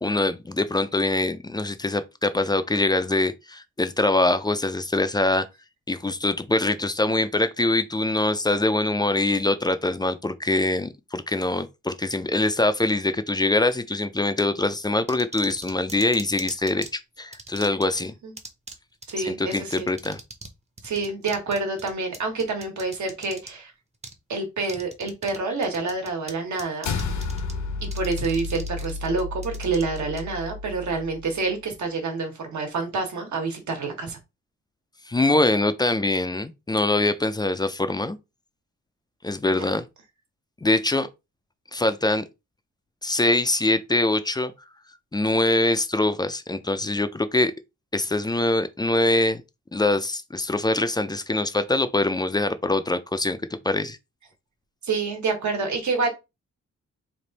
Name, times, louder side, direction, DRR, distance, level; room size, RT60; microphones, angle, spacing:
voice 1, 0.0-5.5 5.9-16.9 17.2-18.1 19.2-20.2 35.1-38.2 39.2-39.9 40.6-41.1 41.7-42.2 43.0-44.5 45.1-47.5 47.9-49.4 49.7-54.0, left 2 dB, 15° left, 0.3 m, -23 dB
sound 1, 15.1-16.9 17.3-18.0 18.4-18.8 19.0-19.1 19.5-20.5 20.8-23.5 24.0-24.2 24.6-25.4 25.6-26.3 26.6-27.5 27.8-30.2, right 3 dB, 20° right, 0.7 m, -40 dB
voice 2, 19.1-19.9 20.8-23.7 24.3-26.9 27.9-34.2 39.6-39.7 54.8-56.1, right 3 dB, 75° right, 1.4 m, -28 dB
sound 2, 26.8-31.4, left 4 dB, 70° left, 0.8 m, -32 dB
3.3 x 2.5 x 4.0 m
wide cardioid pair, 115°, 29 cm